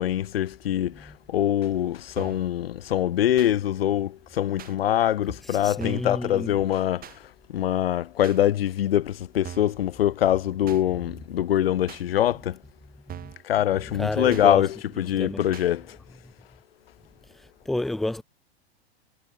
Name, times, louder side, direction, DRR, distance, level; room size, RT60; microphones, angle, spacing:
voice 1, 0.0-7.0 7.5-12.6 13.4-16.0, left 11 dB, 60° left, 1.6 m, -24 dB
sound 1, 2.2-2.5 3.4-3.5 4.6-4.8 5.8-6.2 7.0-7.2 8.2-8.4 9.4-9.8 10.7-10.8 11.9-12.0 13.1-13.4 14.3-14.5 15.5-15.7, right 11 dB, 25° right, 6.9 m, -41 dB
voice 2, 5.4-6.6 10.9-11.0 13.1-13.3 13.7-14.7 14.9-15.5 16.2-16.3 17.2-18.2, left 1 dB, ahead, 0.3 m, -31 dB
figure-of-eight pair, 95°, 33 cm